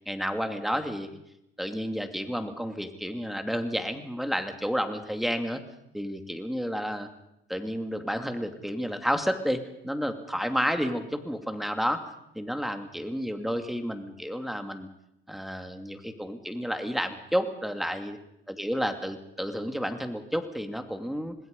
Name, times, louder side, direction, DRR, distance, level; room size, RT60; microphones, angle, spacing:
voice 1, 0.1-1.2 1.6-5.6 5.9-7.1 7.5-12.0 12.3-14.9 15.3-18.2 18.5-21.3, equal, ahead, 7 dB, 2.6 m, -31 dB
26.5 x 20.0 x 5.4 m, 0.81 s
cardioid pair, 90°, 20 cm